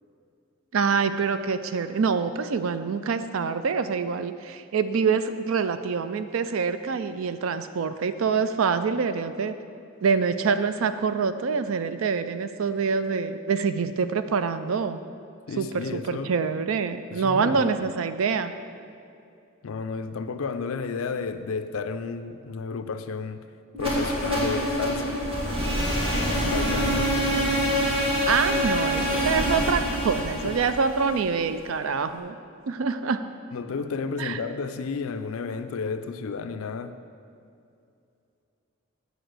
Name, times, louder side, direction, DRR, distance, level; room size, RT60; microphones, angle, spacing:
voice 1, 0.7-9.6 10.0-15.0 15.6-18.5 28.3-32.4 32.7-33.2 34.2-34.4, right 5 dB, 80° right, 11 dB, 0.4 m, -26 dB
voice 2, 15.5-16.3 17.1-17.9 19.6-23.4 23.8-25.2 26.4-27.1 30.4-30.6 33.5-37.0, left 4 dB, 80° left, 10 dB, 0.4 m, -32 dB
sound 1, 23.7-31.7, equal, 25° right, 1.7 m, -26 dB
8.0 x 4.8 x 6.5 m, 2.5 s
head